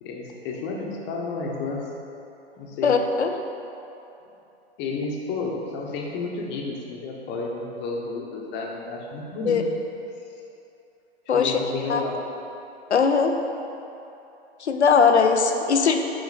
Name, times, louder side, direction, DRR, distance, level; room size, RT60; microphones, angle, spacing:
voice 1, 0.0-1.9 2.5-3.0 4.8-9.6 11.3-12.2, left 3 dB, 35° left, 0 dB, 1.1 m, -31 dB
voice 2, 2.8-3.3 9.4-9.6 11.3-11.6 11.9-12.0 12.9-13.4 14.6-16.0, left 5 dB, 90° left, 5 dB, 0.7 m, -19 dB
7.1 x 5.7 x 4.1 m, 2.9 s
figure-of-eight pair, 105°, 32 cm